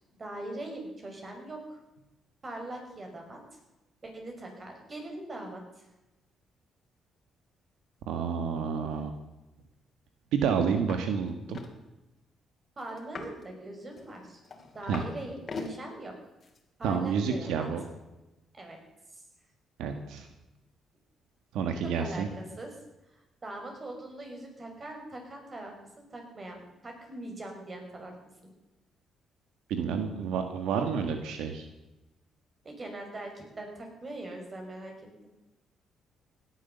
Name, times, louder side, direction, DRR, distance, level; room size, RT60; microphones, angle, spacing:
voice 1, 0.2-1.8 2.4-3.4 4.0-5.8 12.8-14.4 14.7-16.1 16.8-17.7 18.5-18.8 19.1-19.2 21.8-22.7 23.1-28.1 32.6-34.9, right 1 dB, 35° right, 2 dB, 5.6 m, -41 dB
voice 2, 8.1-9.1 10.3-11.6 14.9-15.0 16.8-17.8 19.8-20.3 21.5-22.3 29.7-31.7, right 6 dB, 90° right, 7 dB, 1.6 m, -29 dB
sound 1, 10.9-11.0 11.3-11.7 13.0-13.4 14.0-15.1 15.4-15.7 16.4-16.6, left 4 dB, 40° left, 2.8 m, -40 dB
17.0 x 11.5 x 6.9 m, 1.0 s
cardioid pair, 90°, 0 cm